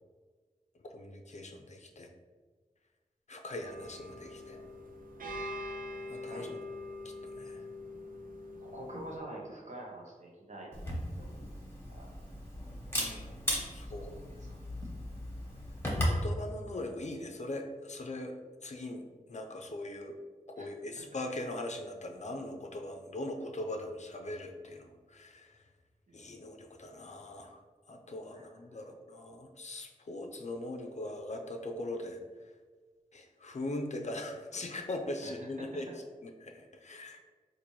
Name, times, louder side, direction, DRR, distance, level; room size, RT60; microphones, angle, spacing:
voice 1, 0.8-2.1 3.3-4.6 6.1-6.5 7.2-7.6 12.9-13.3 13.7-14.2 16.0-18.3 18.6-20.2 20.6-25.6 26.1-27.6 27.9-32.2 33.1-35.9 36.2-37.2, left 1 dB, 55° left, 3 dB, 0.4 m, -41 dB
sound 1, 3.6-9.2, left 1 dB, 75° right, 0.5 m, -43 dB
voice 2, 8.6-10.8 11.2-11.4 11.9-12.1 13.9-14.0 14.4-14.5 20.6-20.7 26.1-26.2 28.3-28.5 35.2-35.7, right 1 dB, 55° right, -2 dB, 0.9 m, -46 dB
Camera, 10.7-16.2, equal, 15° left, 1.1 m, -36 dB
4.0 x 2.5 x 3.0 m, 1.5 s
wide cardioid pair, 65°, 14 cm